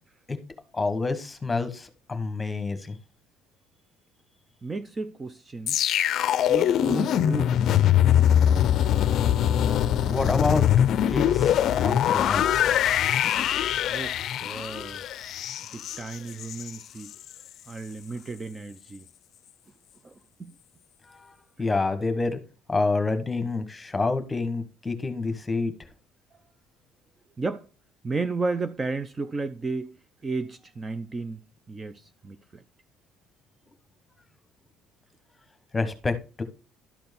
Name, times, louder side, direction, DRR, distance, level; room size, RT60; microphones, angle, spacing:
voice 1, 0.7-3.0 10.1-10.7 11.1-12.6 21.1-21.3 21.6-22.4 22.7-25.7 35.7-36.4, left 3 dB, 15° left, 1.2 m, -28 dB
voice 2, 4.6-5.8 6.5-7.6 13.9-15.0 15.7-17.1 17.7-19.1 20.0-20.5 27.4-27.7 28.0-30.0 30.2-31.4 31.7-32.6, right 3 dB, 20° right, 0.5 m, -33 dB
sound 1, 5.7-16.8 17.1-17.3, left 10 dB, 55° left, 0.5 m, -23 dB
12.0 x 4.5 x 5.2 m
cardioid pair, 135°, 0 cm